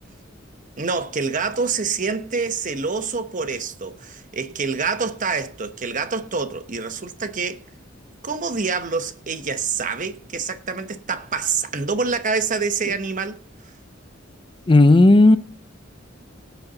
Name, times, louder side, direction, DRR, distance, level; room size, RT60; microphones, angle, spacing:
voice 1, 0.8-7.6 8.2-13.4, right 5 dB, 40° right, 0.9 m, -26 dB
voice 2, 14.7-15.4, left 2 dB, 25° left, 0.5 m, -12 dB
17.5 x 8.3 x 4.0 m
head